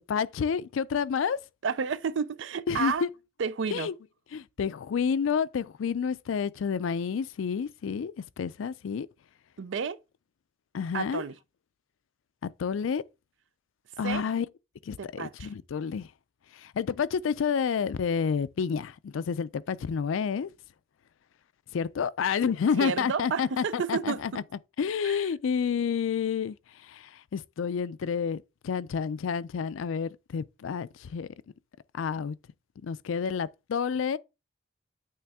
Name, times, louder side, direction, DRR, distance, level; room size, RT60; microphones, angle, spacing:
voice 1, 0.1-1.4 2.7-3.1 3.7-3.9 4.3-9.1 10.7-11.2 12.4-13.0 14.0-14.5 14.9-16.1 16.5-20.5 21.7-24.3 24.8-26.6 26.8-31.3 31.9-32.4 32.8-34.2, left 6 dB, 85° left, 0.4 m, -29 dB
voice 2, 1.6-3.0 3.4-3.9 9.6-10.0 10.9-11.3 14.0-14.2 15.0-15.5 22.8-24.4 25.0-25.2, right 6 dB, 70° right, 0.4 m, -31 dB
8.6 x 3.2 x 3.5 m
head